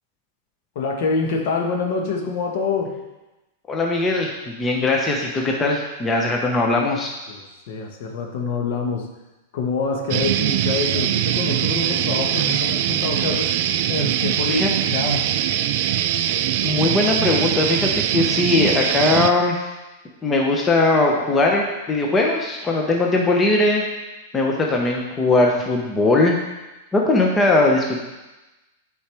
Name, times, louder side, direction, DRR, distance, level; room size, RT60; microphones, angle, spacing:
voice 1, 0.7-2.9 7.3-9.1 9.5-13.6 13.9-15.2, left 4 dB, 60° left, 2 dB, 1.2 m, -26 dB
voice 2, 3.7-7.1 14.5-14.7 16.6-19.6 20.2-23.8 24.3-26.4 26.9-28.0, left 2 dB, 15° left, 0 dB, 0.8 m, -20 dB
sound 1, 10.1-19.3, right 11 dB, 55° right, 0.4 m, -22 dB
8.7 x 4.8 x 3.4 m, 1.1 s
supercardioid pair, 145°, 0 cm